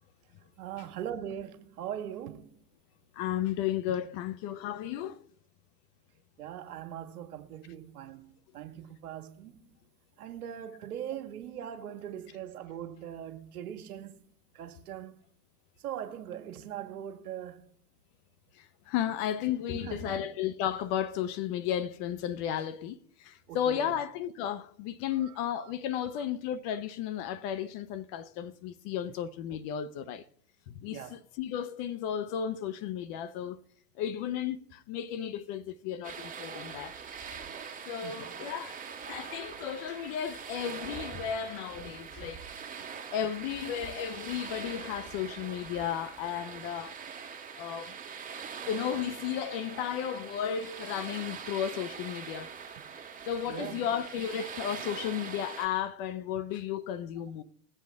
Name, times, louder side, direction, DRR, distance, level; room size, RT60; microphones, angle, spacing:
voice 1, 0.6-2.6 6.4-9.6 10.2-14.2 14.6-15.1 15.8-17.6 19.7-20.3 23.5-24.0 30.8-31.1 38.0-38.4 53.5-53.8, right 10 dB, 65° right, 1.7 m, -41 dB
voice 2, 3.1-5.2 18.5-30.3 30.7-33.6 34.0-37.0 37.9-42.5 43.1-47.0 47.6-48.0 48.7-52.6 53.3-57.4, left 9 dB, 30° left, 0.4 m, -34 dB
sound 1, 36.0-55.7, right 6 dB, 15° right, 1.7 m, -43 dB
21.0 x 7.7 x 3.5 m
hypercardioid pair, 110°, 47 cm